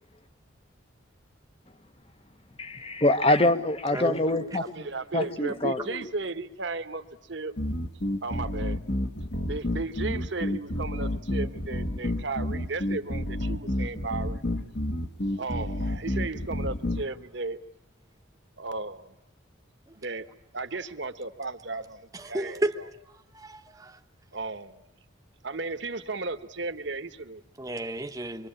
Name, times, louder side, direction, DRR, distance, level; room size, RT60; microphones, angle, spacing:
voice 1, 2.6-4.7 5.1-6.0, left 1 dB, 30° left, 12 dB, 1.0 m, -25 dB
voice 2, 4.6-7.5 8.2-8.8 9.4-14.4 15.4-17.6 18.6-19.1 20.0-20.3 20.5-22.9 24.3-24.8 25.4-27.4 27.7-27.8, right 3 dB, 60° right, 10 dB, 1.2 m, -35 dB
sound 1, 7.6-17.0, left 1 dB, 55° left, 1.4 m, -30 dB
voice 3, 22.1-22.8 23.3-24.0 27.6-28.5, right 1 dB, 15° right, 6 dB, 1.0 m, -32 dB
25.5 x 24.0 x 8.8 m, 0.89 s
head